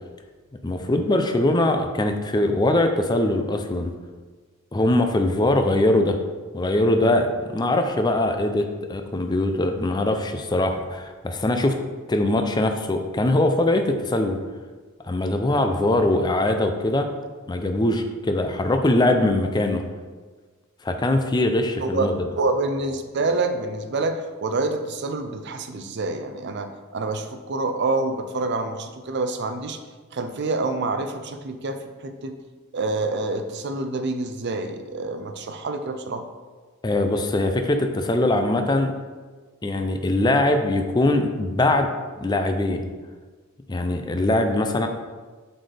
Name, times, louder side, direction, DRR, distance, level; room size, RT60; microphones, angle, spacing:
voice 1, 0.6-3.9 4.7-6.2 6.5-11.8 12.1-14.4 15.0-17.1 17.5-19.8 20.8-22.1 36.8-38.9 39.6-41.9 42.2-42.9 43.7-44.9, left 1 dB, 20° left, 6 dB, 0.4 m, -22 dB
voice 2, 21.8-29.8 30.1-32.3 32.7-36.2, right 3 dB, 55° right, 7 dB, 0.5 m, -27 dB
7.7 x 4.1 x 3.3 m, 1.4 s
head